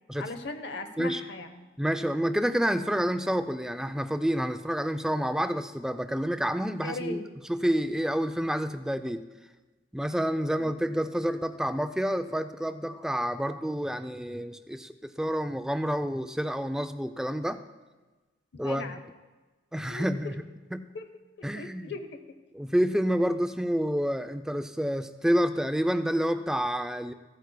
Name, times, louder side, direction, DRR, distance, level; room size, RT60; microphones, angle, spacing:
voice 1, 0.2-1.7 6.8-7.4 10.6-10.8 18.5-19.0 19.9-20.1 20.9-21.0 21.5-22.2, left 3 dB, 65° left, 8 dB, 0.7 m, -38 dB
voice 2, 1.8-7.2 7.5-9.3 9.9-17.6 18.6-18.9 19.7-20.3 20.7-20.9 21.4-21.9 22.5-27.1, equal, 5° right, 9 dB, 0.3 m, -28 dB
15.5 x 9.2 x 2.2 m, 1.2 s
head